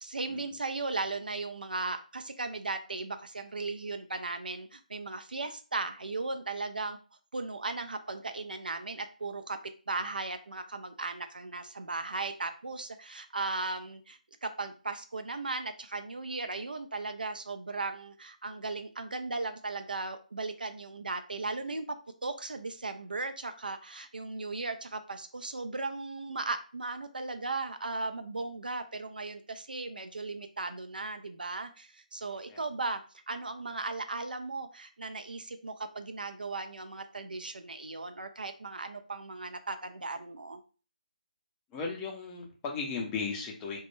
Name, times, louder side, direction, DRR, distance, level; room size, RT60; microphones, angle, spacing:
voice 1, 0.0-7.0 7.3-9.6 9.9-21.8 22.2-33.0 33.3-40.6, right 3 dB, 80° right, 7 dB, 0.4 m, -37 dB
voice 2, 41.7-43.8, left 5 dB, 15° left, -1 dB, 0.5 m, -36 dB
2.1 x 2.1 x 3.0 m, 0.36 s
figure-of-eight pair, 155°, 5 cm